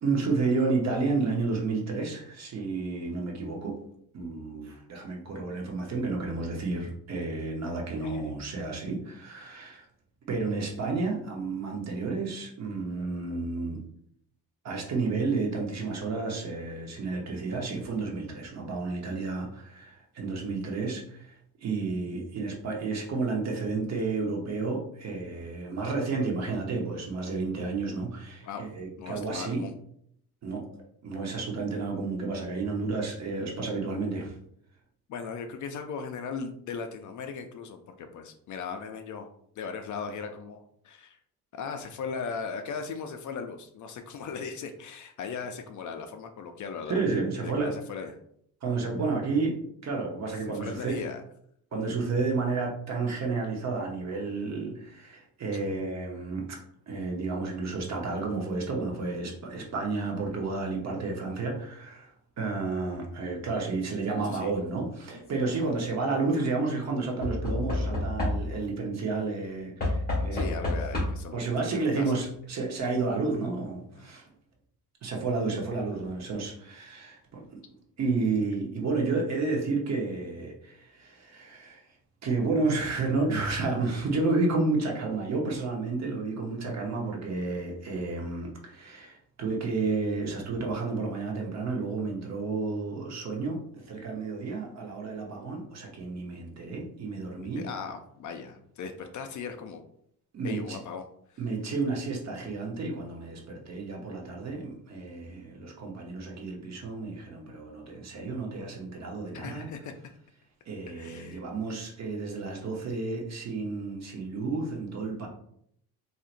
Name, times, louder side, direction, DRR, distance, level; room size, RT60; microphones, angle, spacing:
voice 1, 0.0-3.8 4.1-9.9 10.3-13.8 14.6-29.6 30.4-30.6 31.0-34.4 46.9-47.7 48.6-49.6 49.8-51.0 51.7-56.6 56.9-70.5 71.3-74.3 75.0-81.8 82.2-97.7 100.3-100.8 101.4-109.7 110.7-115.3, right 3 dB, 45° right, 0 dB, 1.0 m, -31 dB
voice 2, 29.0-29.7 35.1-39.3 39.6-41.2 41.5-47.0 47.4-48.2 50.6-51.2 64.3-64.5 70.3-72.2 74.0-74.1 97.3-99.8 100.4-101.4 109.3-109.9 110.9-111.4, left 5 dB, 50° left, 7 dB, 0.4 m, -38 dB
Knock / Wood, 65.0-65.5 67.2-68.7 69.8-71.4 72.4-72.5 72.7-72.8, left 2 dB, 25° left, 1.5 m, -30 dB
4.2 x 2.8 x 2.5 m, 0.69 s
cardioid pair, 140°, 39 cm